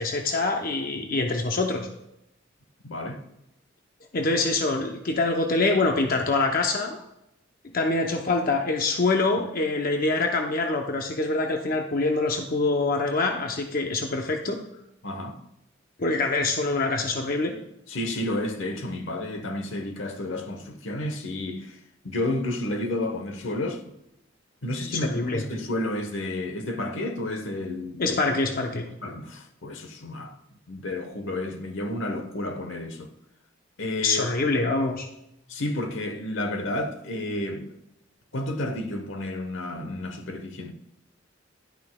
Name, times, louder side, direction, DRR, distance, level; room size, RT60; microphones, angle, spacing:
voice 1, 0.0-1.9 4.1-7.0 7.7-14.6 16.0-17.5 24.9-25.4 28.0-28.9 34.0-35.1, left 3 dB, 45° left, 0.7 m, -25 dB
voice 2, 2.8-3.2 15.0-15.4 17.9-21.8 22.0-23.8 24.6-28.2 29.0-30.4 30.7-33.1 33.8-34.3 35.5-37.8 38.3-40.7, left 1 dB, 75° left, 1.0 m, -31 dB
11.0 x 9.6 x 2.2 m
head